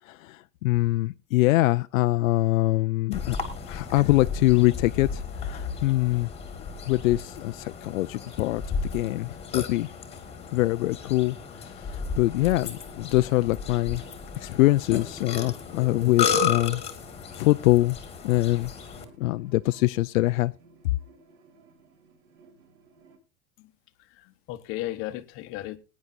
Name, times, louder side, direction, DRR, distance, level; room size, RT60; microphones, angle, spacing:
voice 1, 0.1-3.4 3.7-6.3 6.9-9.9 10.5-11.4 11.9-14.0 14.4-16.8 17.4-18.0 18.2-18.7 19.2-20.5, left 18 dB, 85° left, 0.5 m, -24 dB
Burping eructation, 3.1-19.1, left 6 dB, 15° left, 1.5 m, -33 dB
sound 1, 12.3-23.2, right 4 dB, 60° right, 4.0 m, -55 dB
voice 2, 24.1-25.8, left 15 dB, 30° left, 0.9 m, -35 dB
21.0 x 9.5 x 2.6 m
supercardioid pair, 155°, 40 cm